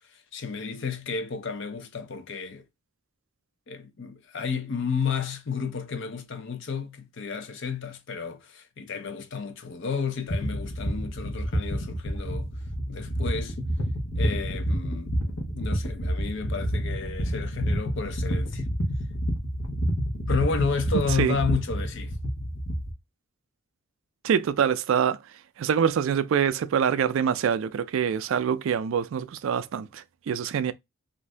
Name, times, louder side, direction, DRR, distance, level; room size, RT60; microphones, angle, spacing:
voice 1, 0.1-2.7 3.7-12.5 12.9-13.6 14.2-18.6 20.3-22.2, left 5 dB, 55° left, 0.5 m, -32 dB
sound 1, 10.3-22.9, equal, 85° left, 1.1 m, -29 dB
voice 2, 24.2-25.2 25.6-30.7, right 7 dB, 65° right, 0.3 m, -25 dB
2.6 x 2.5 x 3.2 m
head